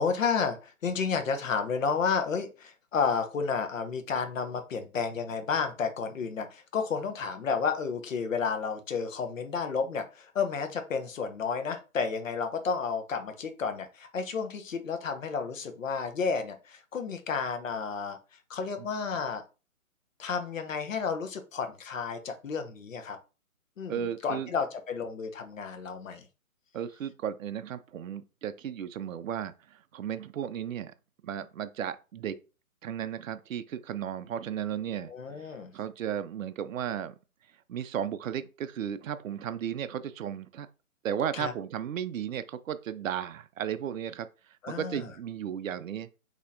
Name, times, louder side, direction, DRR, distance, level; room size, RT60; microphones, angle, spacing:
voice 1, 0.0-18.2 18.5-19.4 20.2-23.2 23.8-26.3 35.1-35.7 41.3-41.5 44.6-45.0, left 5 dB, 60° left, 0.8 m, -31 dB
voice 2, 23.9-24.5 26.7-30.9 31.2-32.3 32.8-35.1 35.4-35.5 35.7-37.2 37.7-40.7 41.0-44.3 44.7-46.1, right 9 dB, 65° right, 0.5 m, -34 dB
4.1 x 2.8 x 2.6 m
hypercardioid pair, 155°, 44 cm